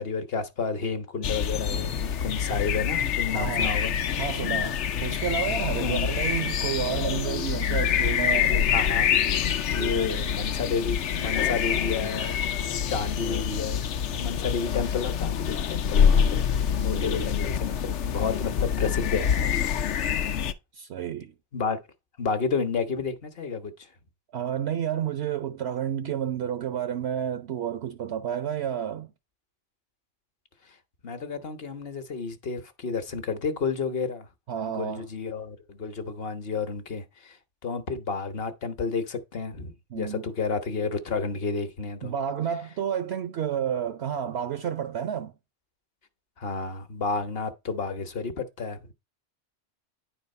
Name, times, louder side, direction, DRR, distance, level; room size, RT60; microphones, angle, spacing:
voice 1, 0.0-3.9 5.8-6.1 8.7-12.5 12.9-16.4 16.8-19.8 20.1-20.4 21.5-21.8 22.2-23.9 31.0-34.3 34.7-37.4 37.6-42.1 46.4-48.8, left 5 dB, 55° left, 1.2 m, -31 dB
sound 1, 1.2-20.5, left 8 dB, 70° left, 1.0 m, -26 dB
voice 2, 3.3-3.8 4.2-8.7 9.8-10.5 16.8-17.3 20.7-21.3 24.3-29.1 34.5-35.1 39.9-40.3 42.0-45.3, right 9 dB, 65° right, 0.9 m, -31 dB
10.0 x 4.0 x 5.3 m
omnidirectional pair, 1.3 m